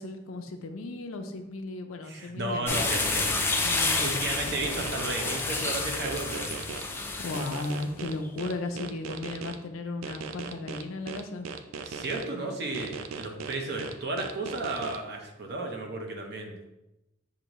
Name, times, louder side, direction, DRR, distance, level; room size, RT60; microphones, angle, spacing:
voice 1, 0.0-2.8 3.6-4.2 4.5-4.6 7.2-11.5, left 2 dB, 90° left, 5 dB, 0.5 m, -35 dB
voice 2, 2.0-3.5 4.0-6.5 11.8-16.5, right 2 dB, 55° right, 2 dB, 0.8 m, -34 dB
sound 1, 2.7-7.8, left 3 dB, 10° left, 0.4 m, -29 dB
sound 2, 4.6-6.8 7.3-9.6 10.0-12.2 12.7-15.0, right 5 dB, 80° right, 0.4 m, -38 dB
6.7 x 2.6 x 3.0 m, 0.96 s
head